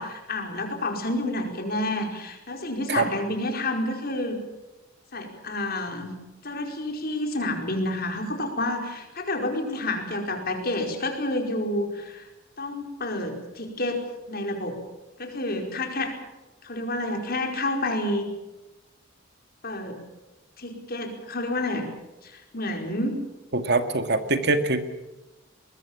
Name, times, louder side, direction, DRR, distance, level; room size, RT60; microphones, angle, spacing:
voice 1, 0.0-4.4 5.1-6.1 6.4-12.3 12.6-14.8 15.2-16.1 16.6-18.3 19.6-20.0 20.6-21.9 22.2-23.2, left 1 dB, 45° left, 3 dB, 4.9 m, -29 dB
voice 2, 23.5-24.8, right 3 dB, 55° right, 8 dB, 2.0 m, -23 dB
23.0 x 21.0 x 7.3 m, 1.1 s
head